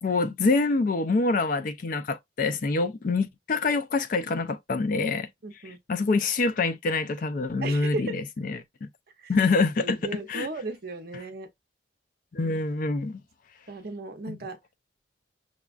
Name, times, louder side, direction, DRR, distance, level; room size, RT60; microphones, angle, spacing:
voice 1, 0.0-5.3 5.7-8.9 9.3-10.0 10.3-10.5 12.3-13.2 14.3-14.4, left 3 dB, 45° left, 0.4 m, -26 dB
voice 2, 5.4-6.1 7.6-8.2 9.2-9.3 9.8-11.5 13.7-14.6, right 2 dB, 50° right, 0.7 m, -36 dB
5.9 x 2.3 x 2.4 m
head